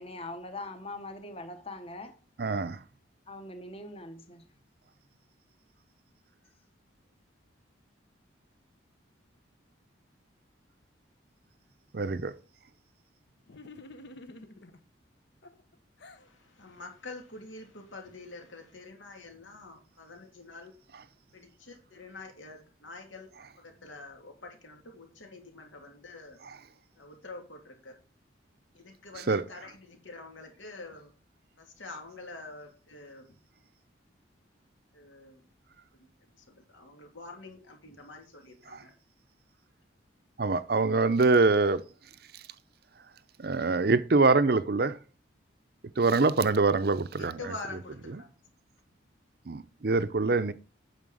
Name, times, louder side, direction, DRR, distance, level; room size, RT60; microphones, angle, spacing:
voice 1, 0.0-2.2 3.3-4.5, left 2 dB, 30° left, 1.0 m, -42 dB
voice 2, 2.4-2.8 11.9-12.3 29.3-29.4 38.7-38.8 40.4-41.8 43.4-45.0 46.0-47.4 49.5-50.5, right 3 dB, 55° right, 0.6 m, -24 dB
sound 1, 13.5-14.8 15.4-16.3, left 2 dB, 60° left, 0.9 m, -48 dB
voice 3, 16.1-20.7 21.3-23.3 23.6-26.4 26.9-28.0 28.7-31.1 31.6-33.3 34.9-35.4 36.0-38.9 47.2-48.3, left 3 dB, 90° left, 2.8 m, -46 dB
9.2 x 6.7 x 5.0 m
head